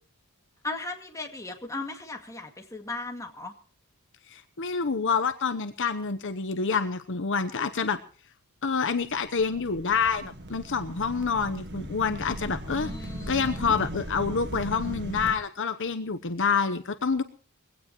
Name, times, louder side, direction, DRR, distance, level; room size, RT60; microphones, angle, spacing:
voice 1, 0.6-3.5 12.7-13.7, left 2 dB, 15° left, 3 dB, 2.1 m, -37 dB
voice 2, 4.3-8.0 8.6-12.9 13.3-17.2, left 5 dB, 55° left, 9 dB, 0.9 m, -27 dB
sound 1, 9.0-15.4, right 1 dB, 50° right, 1.8 m, -38 dB
21.5 x 16.5 x 3.1 m, 0.39 s
head